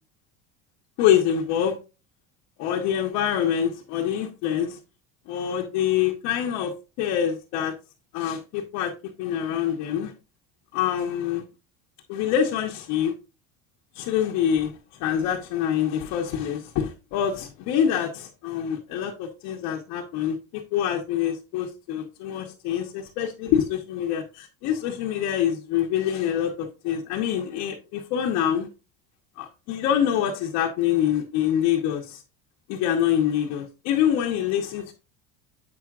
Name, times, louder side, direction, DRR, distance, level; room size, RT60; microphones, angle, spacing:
voice 1, 1.0-1.8 2.6-4.8 5.3-7.7 8.1-8.9 9.2-10.1 10.7-11.4 12.1-13.1 13.9-14.7 15.0-28.7 29.4-32.2 32.7-34.9, left 9 dB, 55° left, 1.0 m, -25 dB
7.9 x 5.9 x 2.4 m
cardioid pair, 175°, 32 cm